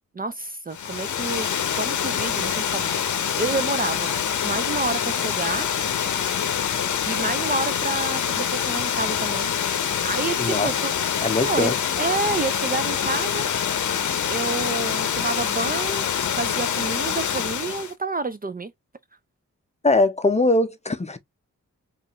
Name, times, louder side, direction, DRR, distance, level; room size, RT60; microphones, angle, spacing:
voice 1, 0.1-1.5 1.7-4.2 4.4-5.7 7.1-9.5 10.0-10.9 11.4-13.5 14.3-16.1 16.4-18.7, right 3 dB, 30° right, 0.4 m, -29 dB
Water, 0.7-17.9, left 8 dB, 70° left, 0.7 m, -25 dB
voice 2, 10.4-10.7 11.2-11.7 19.8-21.2, left 2 dB, 20° left, 0.6 m, -21 dB
5.3 x 2.5 x 2.9 m
wide cardioid pair, 95°, 31 cm